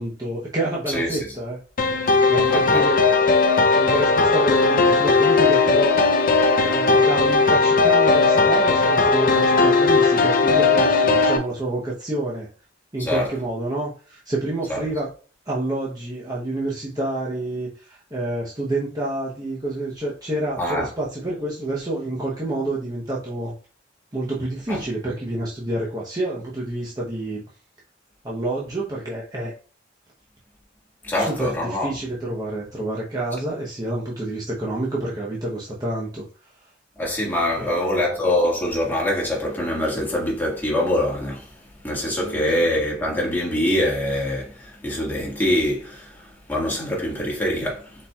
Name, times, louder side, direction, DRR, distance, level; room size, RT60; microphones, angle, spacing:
voice 1, 0.0-1.6 1.9-3.0 3.7-6.0 6.6-12.5 12.9-15.1 15.4-23.5 24.1-27.4 28.2-29.5 31.1-36.3 36.6-36.7 37.5-38.1 42.2-42.5, right 2 dB, 20° right, 0.9 m, -28 dB
sound 1, 1.8-11.4, left 3 dB, 45° left, 0.6 m, -17 dB
voice 2, 2.5-2.9 13.0-13.3 14.7-14.8 20.6-20.9 24.7-24.8 31.0-31.9 37.0-41.5 41.8-47.9, left 1 dB, 10° left, 1.7 m, -24 dB
4.8 x 4.3 x 2.3 m
head